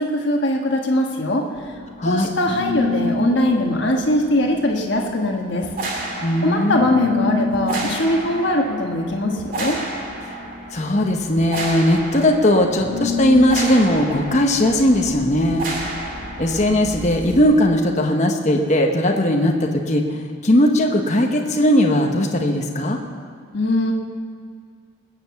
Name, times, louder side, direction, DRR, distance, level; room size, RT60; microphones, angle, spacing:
voice 1, 0.0-1.5 2.0-6.1 6.4-9.8 23.5-23.9, left 1 dB, 55° left, 1 dB, 1.4 m, -21 dB
sound 1, 1.6-17.4, left 1 dB, 40° right, 2.3 m, -29 dB
voice 2, 2.0-2.3 6.2-6.9 10.7-15.6 16.4-23.0, left 1 dB, 35° left, 2 dB, 1.0 m, -18 dB
20.5 x 7.9 x 7.1 m, 2.1 s
head